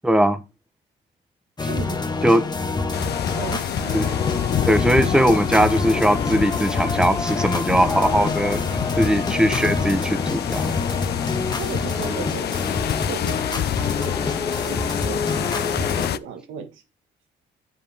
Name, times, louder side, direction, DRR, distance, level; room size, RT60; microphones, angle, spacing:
voice 1, 0.0-0.4 2.2-2.4 3.9-4.1 4.6-8.6 9.0-10.8, right 1 dB, 5° right, 0.9 m, -20 dB
sound 1, 1.6-16.1, left 3 dB, 20° left, 1.3 m, -27 dB
voice 2, 1.7-2.0 3.3-3.7 11.5-12.5 13.0-16.8, right 6 dB, 80° right, 1.4 m, -36 dB
sound 2, 2.9-16.2, left 11 dB, 55° left, 0.5 m, -27 dB
7.4 x 7.3 x 3.4 m
cardioid pair, 90°, 20 cm